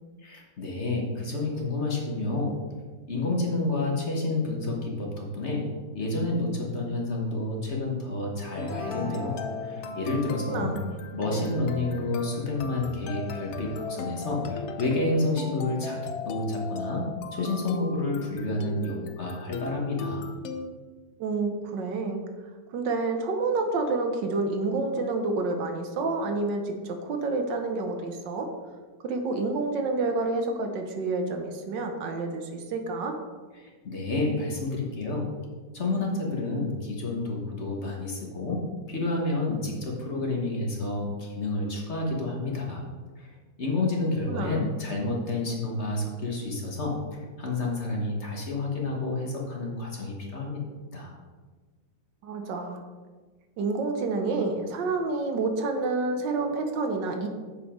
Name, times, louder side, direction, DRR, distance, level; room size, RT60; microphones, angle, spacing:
voice 1, 0.2-2.6 3.1-5.6 5.9-9.4 9.6-10.7 11.1-17.0 17.3-20.3 33.6-35.3 35.7-42.8 43.2-43.3 43.6-50.6 50.9-51.1, left 2 dB, 40° left, -1 dB, 1.4 m, -29 dB
sound 1, 8.5-20.7, left 5 dB, 85° left, 0.6 m, -37 dB
sound 2, 8.6-10.4, equal, ahead, 0.9 m, -39 dB
voice 2, 10.5-10.8 21.2-22.2 22.7-28.5 29.0-33.2 44.3-44.7 52.2-52.8 53.6-57.3, right 3 dB, 85° right, 4 dB, 1.6 m, -29 dB
7.3 x 5.4 x 5.0 m, 1.4 s
omnidirectional pair, 1.9 m